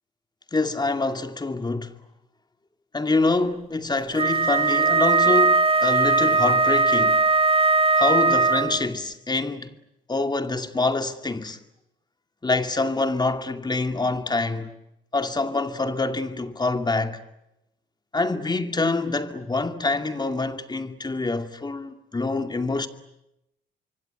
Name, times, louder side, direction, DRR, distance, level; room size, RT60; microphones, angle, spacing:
voice 1, 0.5-1.9 2.9-7.2 8.0-9.7 10.1-11.6 12.4-14.7 15.1-17.2 18.1-22.9, left 3 dB, 20° left, 2.4 m, -25 dB
Wind instrument woodwind instrument, 4.2-8.8, right 3 dB, 30° right, 1.5 m, -19 dB
26.0 x 24.0 x 9.5 m
cardioid pair, 90°, 20 cm